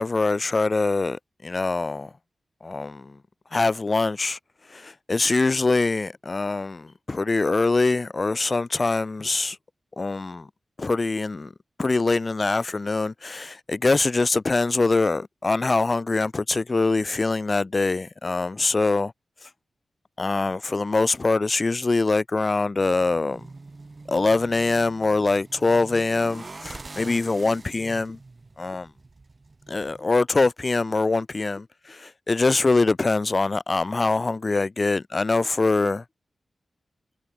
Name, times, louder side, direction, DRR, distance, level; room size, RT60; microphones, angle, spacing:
voice 1, 0.0-2.1 2.6-3.2 3.5-4.4 4.7-9.6 10.0-10.5 10.8-11.5 11.8-19.1 19.4-19.5 20.2-23.5 24.1-28.2 28.6-28.9 29.7-36.0, left 3 dB, 40° left, 0.6 m, -23 dB
sound 1, 22.8-30.0, right 3 dB, 40° right, 6.8 m, -44 dB
cardioid pair, 65°, 0 cm